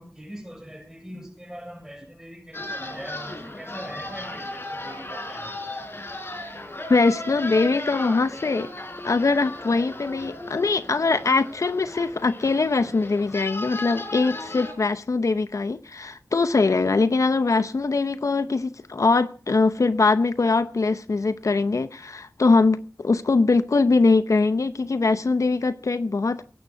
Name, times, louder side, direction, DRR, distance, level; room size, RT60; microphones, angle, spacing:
voice 1, 0.0-5.5, equal, 10° right, 6.9 m, -41 dB
sound 1, 2.5-14.7, left 1 dB, 50° left, 4.0 m, -36 dB
voice 2, 6.9-8.7 9.0-26.4, left 3 dB, 80° left, 0.8 m, -22 dB
18.0 x 9.5 x 6.4 m
wide cardioid pair, 60°, 5 cm